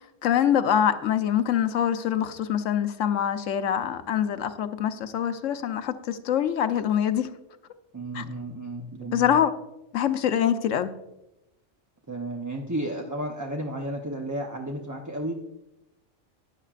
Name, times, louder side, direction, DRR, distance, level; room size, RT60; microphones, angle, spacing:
voice 1, 0.2-7.3 8.1-8.2 9.1-9.5 9.9-10.9, left 9 dB, 85° left, 1.1 m, -24 dB
voice 2, 7.9-9.3 12.1-15.3, right 1 dB, 20° right, 0.7 m, -33 dB
15.0 x 10.0 x 2.5 m
omnidirectional pair, 1.3 m